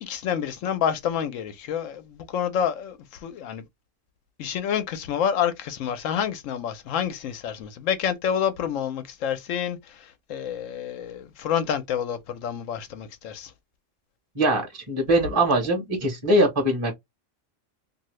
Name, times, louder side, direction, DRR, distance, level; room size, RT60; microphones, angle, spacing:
voice 1, 0.0-3.7 4.4-13.5, left 8 dB, 75° left, 1.0 m, -28 dB
voice 2, 14.3-16.9, right 1 dB, 25° right, 0.9 m, -22 dB
2.7 x 2.6 x 3.1 m
omnidirectional pair, 1.4 m